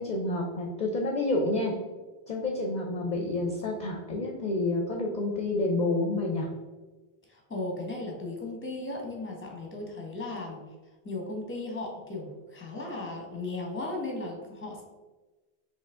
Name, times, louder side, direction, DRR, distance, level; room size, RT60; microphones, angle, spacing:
voice 1, 0.0-1.7 2.3-6.5, left 2 dB, 50° left, 0 dB, 0.6 m, -29 dB
voice 2, 7.3-10.6 11.0-14.8, left 2 dB, 15° left, 0 dB, 0.8 m, -36 dB
4.6 x 2.8 x 3.6 m, 1.2 s
omnidirectional pair, 1.1 m